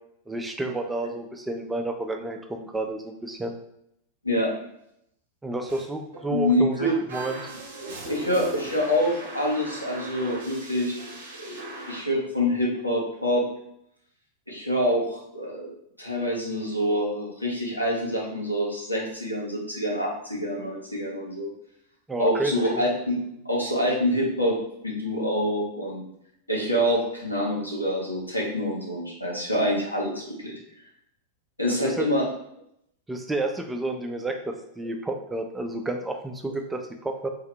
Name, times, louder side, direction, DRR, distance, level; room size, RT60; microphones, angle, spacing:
voice 1, 0.3-3.5 5.4-7.5 22.1-22.8 31.7-32.1 33.1-37.3, right 2 dB, 10° right, 4 dB, 0.5 m, -31 dB
sound 1, 5.7-5.9 6.1-6.4 7.1-12.0, right 1 dB, 60° right, 0.8 m, -38 dB
voice 2, 6.3-7.0 7.8-11.0 11.4-13.4 14.5-15.7 16.0-21.5 22.2-24.6 24.8-26.0 26.5-30.6 31.6-32.3, equal, 90° left, -3 dB, 1.0 m, -26 dB
4.0 x 2.8 x 3.3 m, 0.76 s
figure-of-eight pair, 90°, 0 cm